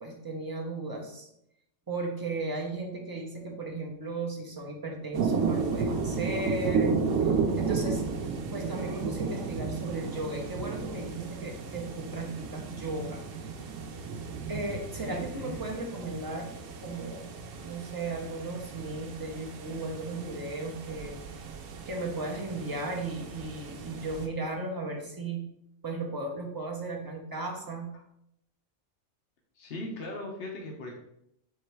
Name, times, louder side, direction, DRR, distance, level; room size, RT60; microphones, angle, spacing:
voice 1, 0.0-1.3 1.9-7.0 7.6-8.0 8.5-13.2 14.5-16.5 16.8-17.3 17.6-21.2 21.8-25.5 25.8-27.9, right 2 dB, 25° right, 0 dB, 0.6 m, -35 dB
sound 1, 5.1-24.3, right 5 dB, 85° right, 1.0 m, -33 dB
voice 2, 15.1-15.6 27.9-28.0 29.5-30.9, left 2 dB, 55° left, -1 dB, 0.9 m, -39 dB
3.7 x 3.2 x 4.4 m, 0.76 s
omnidirectional pair, 1.3 m